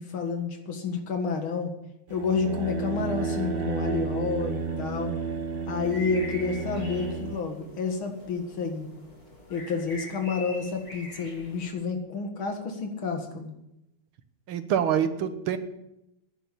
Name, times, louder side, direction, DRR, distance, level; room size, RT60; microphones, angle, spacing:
voice 1, 0.0-1.7 2.1-5.1 5.7-8.9 9.5-13.6, left 5 dB, 75° left, 5 dB, 2.6 m, -30 dB
sound 1, 2.1-7.4, right 5 dB, 35° right, 1.0 m, -32 dB
sound 2, 5.9-11.7, left 2 dB, 45° left, 4.3 m, -44 dB
voice 2, 14.5-15.6, right 9 dB, 80° right, 10 dB, 1.8 m, -25 dB
10.5 x 10.5 x 8.4 m, 0.86 s
omnidirectional pair, 2.3 m